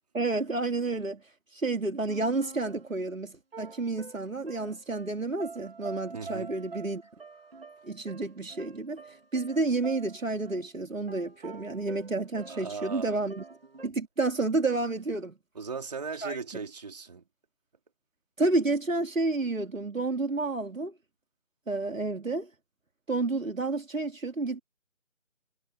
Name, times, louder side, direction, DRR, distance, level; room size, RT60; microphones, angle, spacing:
voice 1, 0.1-1.2 1.5-7.0 7.8-9.0 9.3-13.4 13.8-15.3 16.2-16.4 18.4-20.9 21.7-22.5 23.1-24.6, right 3 dB, 75° right, 3.2 m, -30 dB
sound 1, 2.1-3.1 3.5-10.7 10.9-13.9, right 4 dB, 45° right, 4.7 m, -47 dB
voice 2, 6.1-6.5 12.5-13.2 15.5-17.2, right 5 dB, 30° right, 4.7 m, -38 dB
figure-of-eight pair, 170°, 40 cm